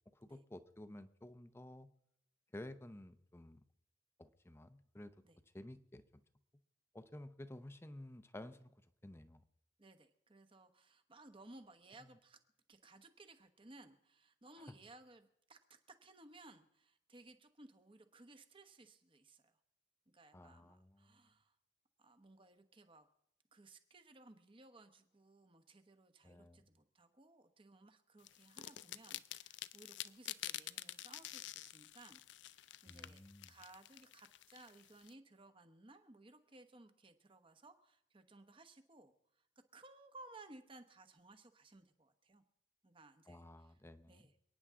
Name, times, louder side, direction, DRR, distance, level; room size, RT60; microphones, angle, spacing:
voice 1, 0.1-1.9 2.5-3.6 4.2-5.2 5.5-6.2 6.9-8.7 9.0-9.4 12.0-12.1 14.6-14.7 20.3-21.2 26.2-26.7 32.9-33.5 43.3-44.2, left 1 dB, 15° left, 11 dB, 0.7 m, -53 dB
voice 2, 9.8-12.4 12.7-19.5 20.1-21.5 22.0-23.1 23.5-39.5 39.7-42.4 42.8-43.7 44.1-44.3, right 2 dB, 30° right, 8 dB, 1.1 m, -60 dB
sound 1, 28.2-35.1, left 14 dB, 80° left, 0.4 m, -48 dB
28.5 x 9.6 x 3.7 m, 0.79 s
head